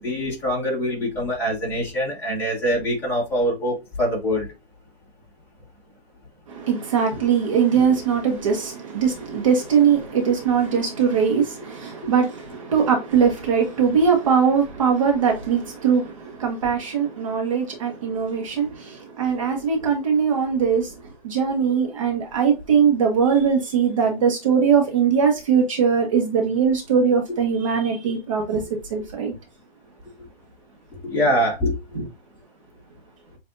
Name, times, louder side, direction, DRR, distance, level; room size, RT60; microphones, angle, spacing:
voice 1, 0.0-4.5 31.0-31.7, equal, 5° left, 1.4 m, -24 dB
voice 2, 6.5-20.9 21.2-28.6 28.9-29.3 31.9-32.0, right 6 dB, 35° right, 1.1 m, -21 dB
7.5 x 2.7 x 2.6 m
hypercardioid pair, 155°, 30 cm